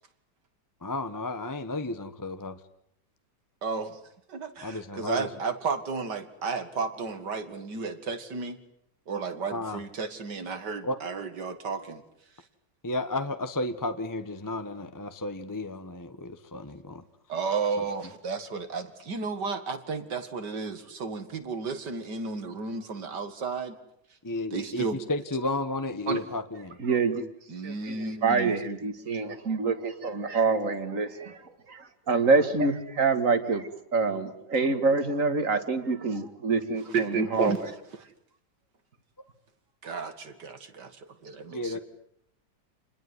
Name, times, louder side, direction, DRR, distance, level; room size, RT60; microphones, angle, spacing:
voice 1, 0.8-2.6 4.6-5.3 9.5-9.8 10.8-11.0 12.8-17.0 17.8-17.9 24.2-26.8 37.3-37.4 41.5-41.8, left 2 dB, 15° left, 10 dB, 1.0 m, -33 dB
voice 2, 3.6-4.0 4.3-8.6 9.1-12.0 17.3-23.8 24.5-25.0 26.1-26.2 27.5-28.5 36.9-37.6 39.8-41.8, right 4 dB, 80° right, 10 dB, 2.7 m, -32 dB
voice 3, 26.8-27.2 27.6-37.5, right 4 dB, 50° right, 10 dB, 2.3 m, -26 dB
27.5 x 21.0 x 9.6 m, 0.74 s
omnidirectional pair, 1.8 m